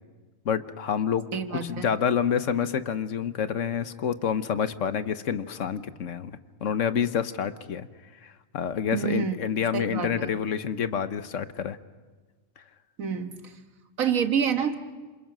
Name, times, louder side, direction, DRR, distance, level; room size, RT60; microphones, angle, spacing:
voice 1, 0.4-1.3 1.5-7.9 8.2-11.8 12.6-12.7, left 8 dB, 70° left, 12 dB, 1.3 m, -28 dB
voice 2, 1.3-1.8 8.9-9.4 9.7-10.3 13.0-13.4 14.0-14.7, right 7 dB, 90° right, 7 dB, 1.9 m, -27 dB
29.0 x 27.0 x 6.1 m, 1.4 s
omnidirectional pair, 1.4 m